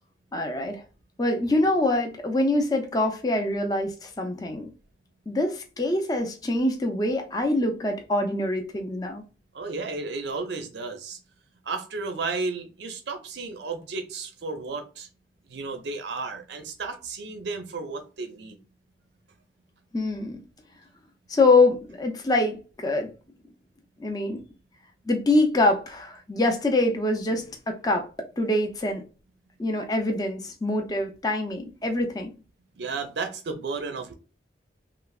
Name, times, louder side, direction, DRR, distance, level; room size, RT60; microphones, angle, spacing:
voice 1, 0.3-0.8 1.2-4.7 5.3-9.2 19.9-20.4 21.3-23.1 24.0-24.4 25.1-28.1 28.4-29.0 29.6-32.3, left 2 dB, 20° left, 0.4 m, -24 dB
voice 2, 9.5-11.2 11.7-15.1 15.5-18.6 32.8-34.1, right 4 dB, 70° right, 0.5 m, -33 dB
3.1 x 2.0 x 2.2 m
head